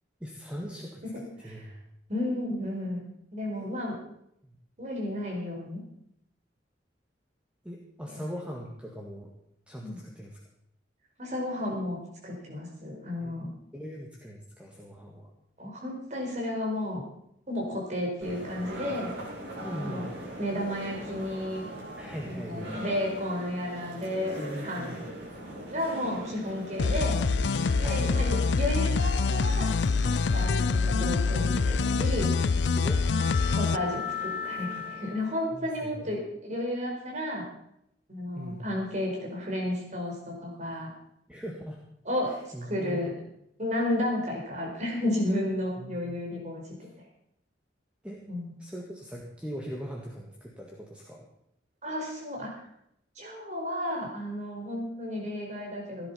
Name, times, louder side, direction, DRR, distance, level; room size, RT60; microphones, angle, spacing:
voice 1, 0.2-1.0 1.4-1.8 3.5-3.7 4.4-4.6 7.6-9.3 9.7-10.4 13.2-13.4 13.7-15.3 19.6-20.1 22.0-22.8 24.4-25.0 27.8-28.5 32.4-33.2 35.5-36.1 38.3-38.7 41.3-41.8 42.2-43.0 45.8-46.2 48.0-48.2 48.6-51.2, equal, 5° right, -2 dB, 1.9 m, -40 dB
voice 2, 1.1-1.7 2.1-4.0 4.8-5.8 8.1-8.2 9.8-10.0 11.2-13.5 15.6-17.0 17.5-19.1 19.8-20.1 20.4-21.7 22.2-24.3 24.6-24.9 25.7-27.2 27.8-29.7 30.0-32.3 33.6-37.4 38.1-40.9 42.0-42.3 42.7-43.1 43.6-46.6 48.3-48.5 51.8-52.5 53.2-56.1, left 1 dB, 40° right, -1 dB, 4.8 m, -32 dB
sound 1, 18.2-35.4, left 1 dB, 75° right, 6.1 m, -40 dB
sound 2, 26.8-33.8, left 4 dB, 75° left, 0.5 m, -25 dB
16.5 x 10.5 x 5.8 m, 0.76 s
head